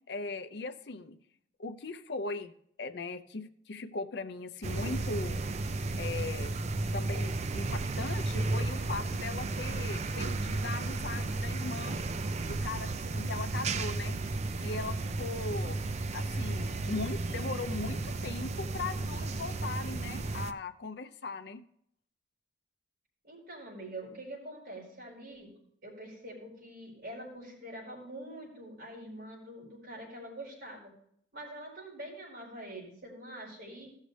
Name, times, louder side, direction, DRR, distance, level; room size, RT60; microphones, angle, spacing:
voice 1, 0.1-1.2 1.6-2.5 2.8-5.4 6.0-6.5 6.9-12.0 12.4-14.2 14.6-15.8 16.1-21.6, left 3 dB, 60° left, 10 dB, 0.6 m, -39 dB
sound 1, 4.6-20.5, right 2 dB, 35° right, 0.4 m, -33 dB
voice 2, 23.2-25.5 25.8-30.9 31.3-33.9, right 1 dB, 55° right, -4 dB, 4.7 m, -45 dB
15.0 x 6.5 x 3.3 m, 0.69 s
head